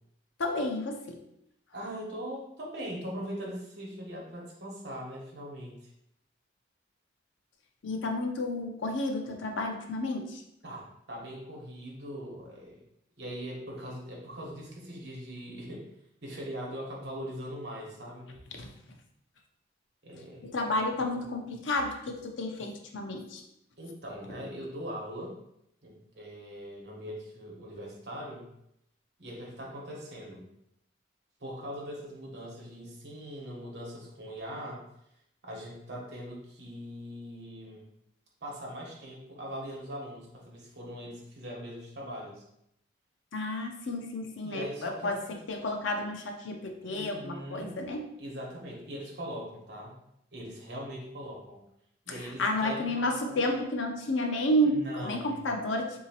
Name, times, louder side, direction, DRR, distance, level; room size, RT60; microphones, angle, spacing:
voice 1, 0.4-1.2 7.8-10.4 18.6-18.7 20.4-23.4 43.3-45.2 45.5-48.1 52.4-56.0, left 1 dB, 85° left, 3 dB, 0.6 m, -31 dB
voice 2, 1.7-5.9 10.6-12.8 13.2-15.9 16.2-18.3 20.0-20.5 21.2-21.3 23.8-25.3 25.8-28.5 29.2-30.4 31.4-34.8 35.4-37.9 38.4-42.4 44.4-45.4 46.8-47.8 48.2-49.9 50.3-51.6 52.0-53.4 54.6-55.4, equal, 60° right, -3 dB, 1.1 m, -41 dB
3.8 x 2.7 x 2.8 m, 0.78 s
head